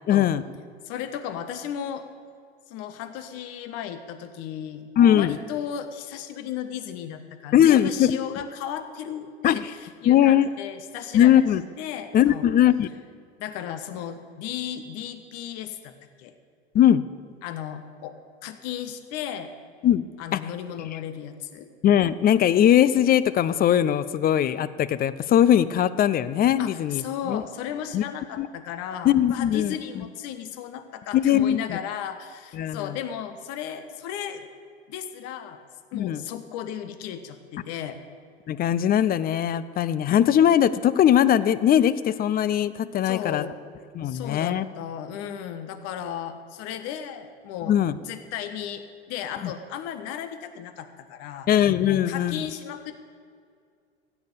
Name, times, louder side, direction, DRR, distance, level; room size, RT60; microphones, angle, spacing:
voice 1, 0.1-0.4 5.0-5.3 7.5-8.1 9.4-9.6 10.1-10.5 11.1-11.6 12.1-12.9 16.7-17.0 19.8-20.0 20.3-20.4 20.9-21.0 21.8-27.4 27.9-28.0 28.4-28.5 29.0-29.7 31.1-31.8 32.5-32.9 35.9-36.2 38.5-43.5 43.9-44.6 47.7-48.0 51.5-52.4, left 10 dB, 30° left, 16 dB, 0.6 m, -20 dB
voice 2, 0.8-2.0 2.7-4.9 5.1-11.4 11.8-12.4 13.4-16.3 17.4-18.1 18.4-19.5 20.2-21.7 26.6-34.5 34.9-35.6 35.9-38.0 43.0-43.5 44.0-47.7 48.0-51.5 51.9-53.0, left 9 dB, 50° left, 10 dB, 1.3 m, -35 dB
15.5 x 7.0 x 8.3 m, 2.2 s
figure-of-eight pair, 80°, 31 cm